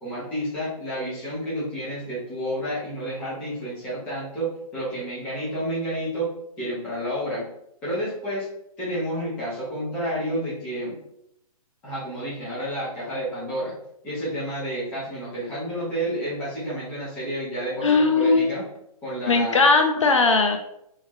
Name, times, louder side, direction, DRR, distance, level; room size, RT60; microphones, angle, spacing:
voice 1, 0.0-6.3 6.6-7.4 7.8-8.5 8.8-11.0 11.8-13.7 14.0-18.7 19.0-19.7, right 1 dB, 5° left, -9 dB, 0.6 m, -30 dB
voice 2, 17.8-18.6 19.3-20.6, left 4 dB, 55° left, 5 dB, 0.4 m, -19 dB
3.1 x 2.7 x 3.5 m, 0.78 s
hypercardioid pair, 175°, 20 cm